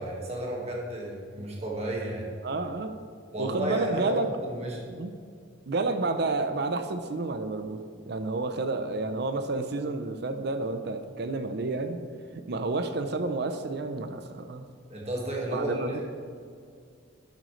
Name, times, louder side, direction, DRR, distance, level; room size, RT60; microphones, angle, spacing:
voice 1, 0.0-2.4 3.3-4.2 4.4-4.8 14.9-16.0, right 1 dB, 30° right, -2 dB, 1.7 m, -32 dB
voice 2, 2.4-2.9 3.4-4.3 4.9-5.1 5.7-7.8 8.1-12.0 12.3-14.6 15.5-16.0, right 3 dB, 55° right, 8 dB, 0.5 m, -30 dB
11.5 x 8.1 x 3.2 m, 2.2 s
head